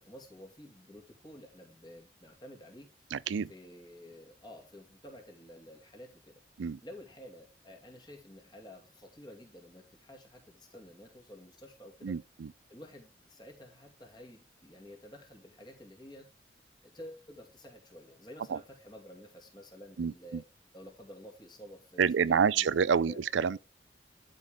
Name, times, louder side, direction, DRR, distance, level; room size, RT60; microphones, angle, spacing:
voice 1, 0.0-2.9 3.5-6.4 6.8-12.2 12.7-16.3 16.8-20.4 20.7-22.7 23.0-23.2 23.5-23.6, equal, 25° left, 2.4 m, -51 dB
voice 2, 3.1-3.5 6.6-6.8 12.0-12.5 18.5-18.6 20.0-20.4 22.0-23.6, right 6 dB, 85° right, 0.4 m, -28 dB
11.5 x 5.2 x 3.6 m
head